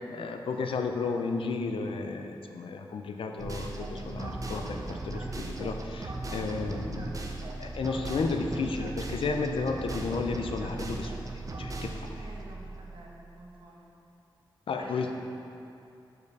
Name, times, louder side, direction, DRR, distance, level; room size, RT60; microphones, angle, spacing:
voice 1, 0.0-7.2 7.6-12.2 14.7-15.1, left 4 dB, 90° left, 4 dB, 0.5 m, -33 dB
sound 1, 3.4-13.3, right 2 dB, 40° right, 0.5 m, -37 dB
voice 2, 12.2-13.8 14.8-15.1, right 1 dB, 70° right, -3 dB, 1.0 m, -49 dB
5.2 x 4.7 x 4.7 m, 2.7 s
wide cardioid pair, 150°, 9 cm